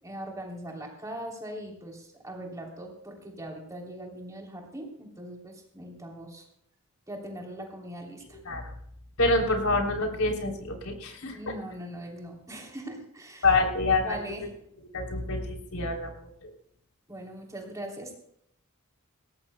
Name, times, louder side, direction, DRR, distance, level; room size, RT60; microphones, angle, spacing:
voice 1, 0.0-6.4 7.1-8.4 11.3-13.5 14.0-14.5 17.1-18.2, right 1 dB, 15° right, 0 dB, 3.1 m, -40 dB
voice 2, 8.3-8.6 9.2-11.4 13.4-14.2 14.9-16.5, left 2 dB, 90° left, 2 dB, 3.3 m, -27 dB
21.0 x 17.5 x 2.2 m, 0.71 s
head